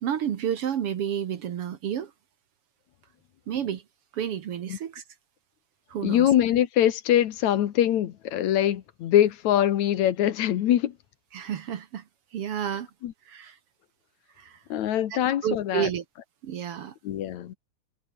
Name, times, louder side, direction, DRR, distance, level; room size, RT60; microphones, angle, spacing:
voice 1, 0.0-2.1 3.5-3.8 4.1-5.0 5.9-6.3 11.3-12.1 12.3-12.9 13.3-13.6 14.4-14.6 15.1-16.0 16.4-17.0, right 9 dB, 60° right, 2.0 m, -30 dB
voice 2, 6.0-10.9 13.0-13.1 14.7-15.9 17.0-17.6, left 11 dB, 75° left, 2.6 m, -23 dB
omnidirectional pair, 3.4 m